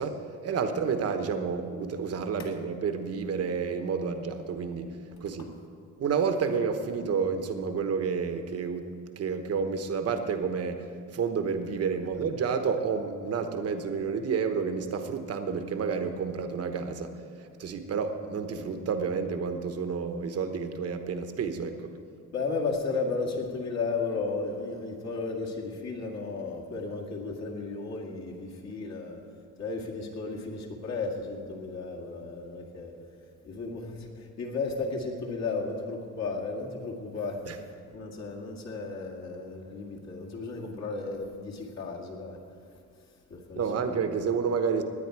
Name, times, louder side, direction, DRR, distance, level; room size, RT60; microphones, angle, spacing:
voice 1, 0.0-5.5 6.0-21.9 37.4-37.6 43.6-44.8, right 5 dB, 45° right, 7 dB, 1.1 m, -30 dB
voice 2, 22.3-29.2 29.6-32.9 33.4-37.7 37.9-42.4 43.3-44.0, left 3 dB, 50° left, -2 dB, 2.2 m, -34 dB
18.5 x 9.8 x 4.7 m, 2.3 s
cardioid pair, 145°, 33 cm